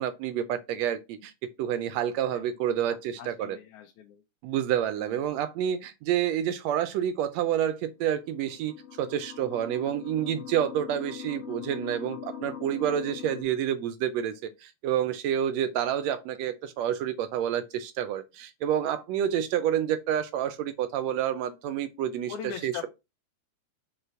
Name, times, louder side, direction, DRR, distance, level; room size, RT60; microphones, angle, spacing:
voice 1, 0.0-1.3 1.6-3.6 4.4-22.3 22.6-22.7, right 10 dB, 75° right, 1.6 m, -29 dB
voice 2, 3.2-4.2 5.0-5.2 22.3-22.9, left 8 dB, 80° left, 2.2 m, -40 dB
sound 1, 8.1-13.4, left 8 dB, 60° left, 1.9 m, -41 dB
5.4 x 3.9 x 4.4 m
omnidirectional pair, 3.4 m